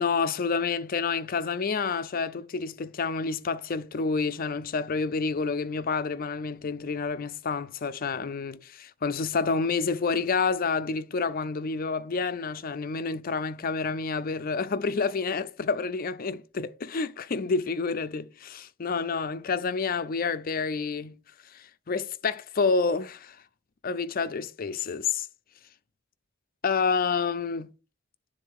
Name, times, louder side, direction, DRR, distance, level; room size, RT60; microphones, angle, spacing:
voice 1, 0.0-21.1 21.5-23.4 23.8-25.3 26.6-27.7, left 4 dB, 45° left, 0.5 m, -29 dB
9.8 x 3.9 x 4.6 m
head